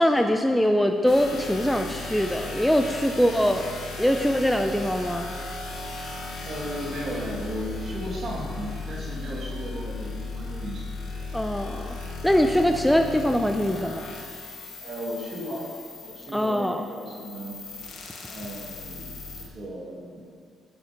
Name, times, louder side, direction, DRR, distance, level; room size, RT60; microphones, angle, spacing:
voice 1, 0.0-3.7 4.0-5.3 11.3-11.9 12.2-14.0 16.3-16.8, equal, 5° left, 5 dB, 0.5 m, -22 dB
sound 1, 1.1-19.5, left 3 dB, 70° left, 1.8 m, -37 dB
voice 2, 6.4-11.0 14.8-15.6 16.0-17.6 18.2-19.1 19.4-20.2, right 1 dB, 50° right, -3 dB, 2.3 m, -35 dB
11.0 x 6.9 x 5.1 m, 2.1 s
cardioid pair, 105°, 0 cm